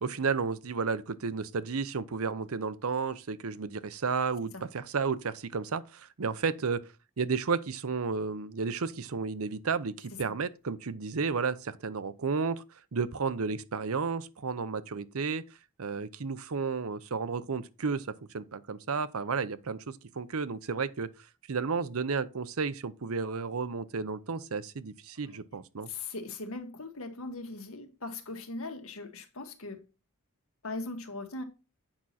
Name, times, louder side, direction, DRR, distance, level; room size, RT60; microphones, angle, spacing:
voice 1, 0.0-6.8 7.2-12.6 12.9-15.4 15.8-21.1 21.5-25.9, right 5 dB, 75° right, 0.7 m, -32 dB
voice 2, 25.9-29.8 30.6-31.4, left 2 dB, 70° left, 1.7 m, -39 dB
8.8 x 6.0 x 4.2 m
head